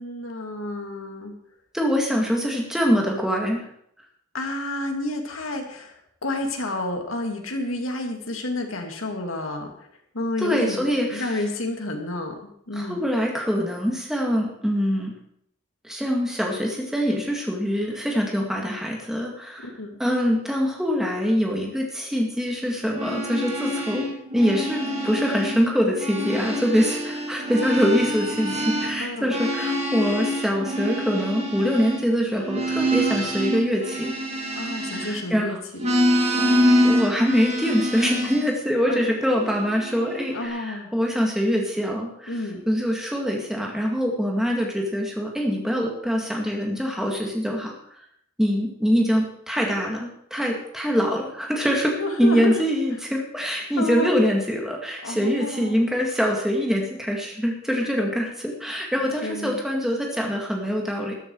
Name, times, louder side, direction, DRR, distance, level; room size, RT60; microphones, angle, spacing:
voice 1, 0.0-1.3 4.3-9.7 10.1-13.0 19.6-20.0 29.0-29.4 34.5-35.6 38.8-39.1 40.3-40.9 42.3-42.6 52.0-52.6 53.8-54.1 55.0-55.7 59.2-59.6, left 2 dB, 85° left, 3 dB, 2.4 m, -30 dB
voice 2, 1.7-3.6 10.4-11.4 12.7-15.1 15.8-19.7 20.0-34.1 34.9-35.6 36.5-42.3 42.7-47.7 48.4-61.1, equal, ahead, -1 dB, 2.1 m, -24 dB
sound 1, 22.8-25.6 25.9-35.4 35.8-38.5 39.2-40.5, equal, 30° right, 2.3 m, -26 dB
13.0 x 12.0 x 4.7 m, 0.71 s
head